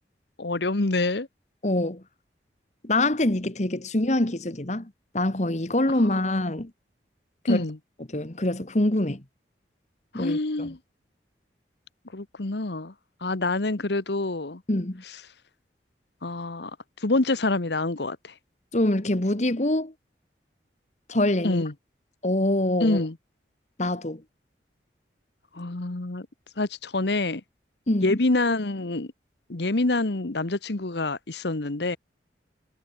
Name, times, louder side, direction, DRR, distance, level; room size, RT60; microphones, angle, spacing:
voice 1, 0.4-1.3 6.2-6.4 7.5-7.8 10.1-10.8 12.1-12.9 13.2-14.6 16.2-16.7 17.0-18.3 21.4-21.7 22.8-23.1 25.5-26.3 26.6-27.4 28.0-29.1 29.5-32.0, left 2 dB, 70° left, 1.2 m, -26 dB
voice 2, 1.6-2.0 2.8-6.7 7.4-7.6 8.1-9.2 10.1-10.7 14.7-15.0 18.7-19.9 21.1-21.6 22.2-23.0 23.8-24.2 27.9-28.2, left 1 dB, 40° left, 1.5 m, -25 dB
head